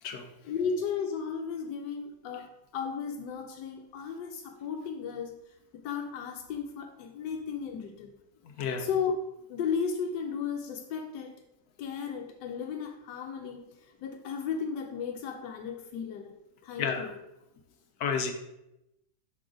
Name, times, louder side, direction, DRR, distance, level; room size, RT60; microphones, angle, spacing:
voice 1, 0.4-5.4 5.7-8.1 8.8-9.1 9.5-11.4 11.8-13.7 14.0-16.3 16.6-17.1, left 6 dB, 90° left, 3 dB, 1.3 m, -34 dB
voice 2, 8.4-8.9 16.8-17.1 18.0-18.3, left 6 dB, 70° left, 6 dB, 1.2 m, -31 dB
6.1 x 3.8 x 4.8 m, 0.86 s
omnidirectional pair, 1.8 m